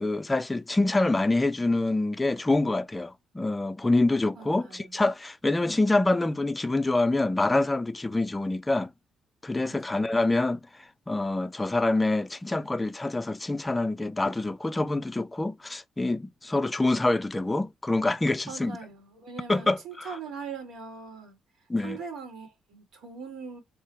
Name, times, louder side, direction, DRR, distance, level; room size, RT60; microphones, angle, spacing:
voice 1, 0.0-8.9 9.4-10.6 11.1-18.8 19.5-20.1 21.7-22.0, left 2 dB, 15° left, 0.4 m, -26 dB
voice 2, 4.4-5.0 9.6-10.1 18.5-21.4 21.8-23.6, right 5 dB, 80° right, 2.0 m, -41 dB
3.7 x 2.2 x 4.2 m
cardioid pair, 90°, 0 cm